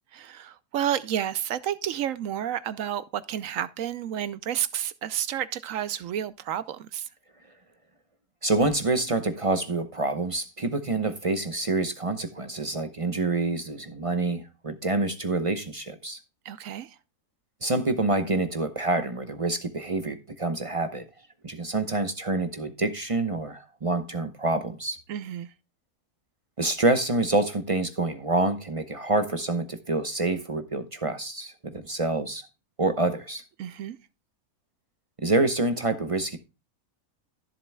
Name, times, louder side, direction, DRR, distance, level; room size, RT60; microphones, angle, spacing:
voice 1, 0.1-7.1 16.4-17.0 25.1-25.5 33.6-34.0, right 10 dB, 65° right, 0.9 m, -31 dB
voice 2, 8.4-16.2 17.6-21.0 21.4-25.0 26.6-32.5 32.8-33.4 35.2-36.4, right 2 dB, 30° right, 0.6 m, -27 dB
14.0 x 7.4 x 2.2 m
omnidirectional pair, 1.6 m